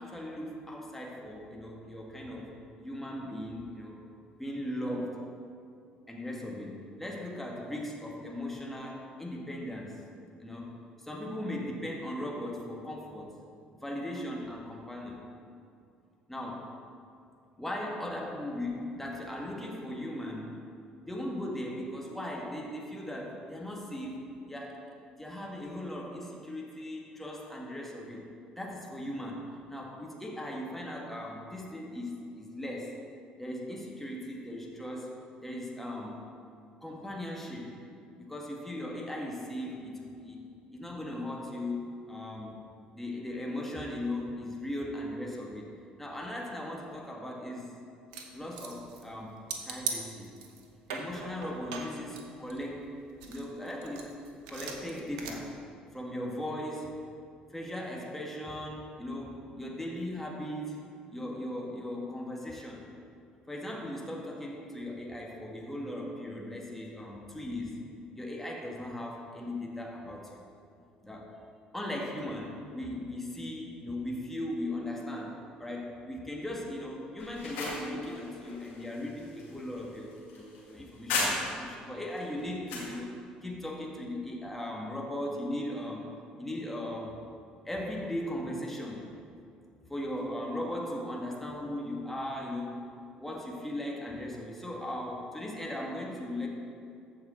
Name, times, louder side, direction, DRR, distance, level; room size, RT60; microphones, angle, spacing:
voice 1, 0.0-2.5 2.8-4.0 4.3-5.2 6.1-10.0 10.4-10.7 11.0-13.4 13.8-15.2 16.3-16.7 17.6-20.6 21.0-24.2 24.5-24.8 25.1-28.3 28.6-32.9 33.4-36.2 36.8-37.8 38.2-40.4 40.7-42.6 42.9-45.7 46.0-47.7 48.3-50.3 50.9-52.9 53.3-54.1 54.5-55.5 55.9-57.0 57.5-60.8 61.1-62.9 63.5-67.8 68.1-70.4 71.0-71.4 71.7-86.1 86.4-87.2 87.7-89.1 89.9-92.8 93.2-96.5, left 1 dB, 5° left, -2 dB, 1.8 m, -38 dB
sound 1, 48.1-49.1 49.5-50.6 50.9-52.9 53.2-55.3, right 5 dB, 75° right, 0.9 m, -39 dB
sound 2, 77.2-81.8 82.2-82.9, left 3 dB, 70° left, 2.1 m, -36 dB
14.0 x 4.8 x 4.4 m, 2.5 s
hypercardioid pair, 55°, 4 cm